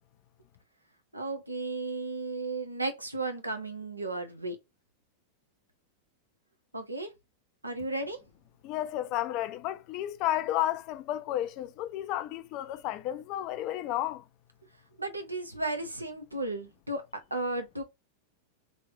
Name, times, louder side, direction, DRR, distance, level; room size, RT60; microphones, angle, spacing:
voice 1, 1.1-4.6 6.7-7.1 7.6-8.2 15.0-17.0 17.3-17.8, right 2 dB, 85° right, 0.7 m, -34 dB
voice 2, 8.6-14.2, left 13 dB, 40° left, 0.4 m, -32 dB
3.2 x 2.8 x 2.6 m
figure-of-eight pair, 90°, 0 cm